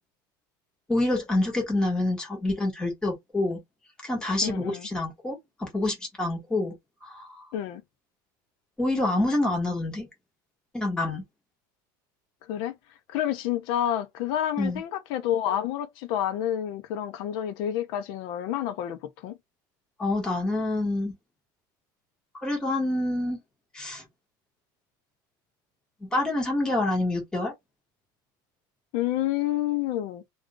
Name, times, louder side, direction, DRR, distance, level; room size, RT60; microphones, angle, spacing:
voice 1, 0.9-3.6 4.0-6.7 7.0-7.3 8.8-10.1 10.7-11.2 14.6-14.8 20.0-21.1 22.4-23.4 23.7-24.0 26.0-27.5, left 2 dB, 5° left, 1.1 m, -27 dB
voice 2, 4.4-4.9 7.5-7.8 12.5-12.7 13.1-19.4 28.9-30.2, left 11 dB, 50° left, 0.6 m, -29 dB
2.4 x 2.3 x 3.8 m
cardioid pair, 170°, 11 cm